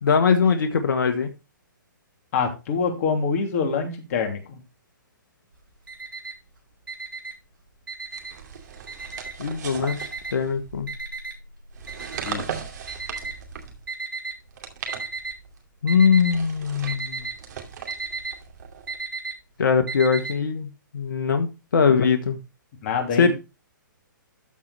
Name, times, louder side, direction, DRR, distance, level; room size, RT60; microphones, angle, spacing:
voice 1, 0.0-1.3 9.4-10.0 10.3-10.9 15.8-17.3 19.6-20.7 20.9-22.4 23.2-23.3, left 6 dB, 75° left, 7 dB, 1.4 m, -21 dB
voice 2, 2.3-4.6 12.2-12.5 22.8-23.3, left 5 dB, 45° left, 3 dB, 3.2 m, -25 dB
Alarm, 5.5-6.5 6.8-8.5 8.9-9.5 9.9-14.3 14.9-15.5 15.8-16.4 16.7-20.3, right 4 dB, 85° right, 5.8 m, -34 dB
sound 1, 8.1-10.9 11.7-13.9 14.4-15.6 16.2-19.0, right 7 dB, 60° right, 2.5 m, -38 dB
13.5 x 4.5 x 4.2 m, 0.27 s
hypercardioid pair, 135°, 11 cm